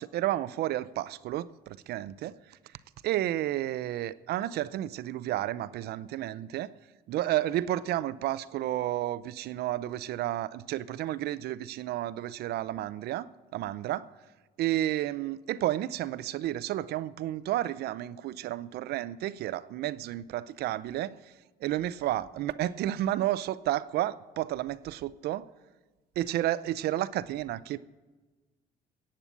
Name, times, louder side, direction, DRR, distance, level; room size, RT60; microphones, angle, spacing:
voice 1, 0.0-2.3 3.0-6.7 7.1-13.3 13.5-14.1 14.6-21.2 21.6-25.5 26.2-27.8, right 14 dB, 70° right, 17 dB, 0.6 m, -31 dB
15.5 x 8.8 x 8.2 m, 1.3 s
cardioid pair, 110°, 17 cm